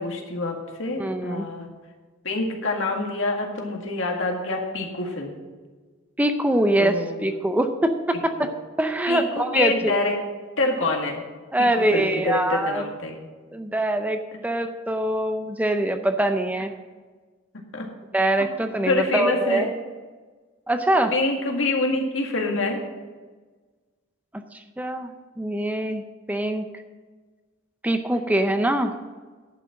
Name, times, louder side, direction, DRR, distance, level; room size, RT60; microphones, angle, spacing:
voice 1, 0.0-1.7 2.2-5.4 6.8-7.2 8.4-8.5 9.1-10.1 10.6-11.2 11.6-13.2 17.7-17.9 18.9-19.7 21.1-22.8, left 2 dB, 75° left, 1 dB, 1.9 m, -26 dB
voice 2, 1.0-1.5 6.2-8.5 8.8-9.9 11.5-12.8 13.5-16.7 18.1-19.7 20.7-21.1 24.5-25.1 25.4-26.0 26.3-26.7 27.8-28.9, right 1 dB, 10° right, 7 dB, 0.5 m, -23 dB
10.5 x 6.1 x 7.6 m, 1.4 s
head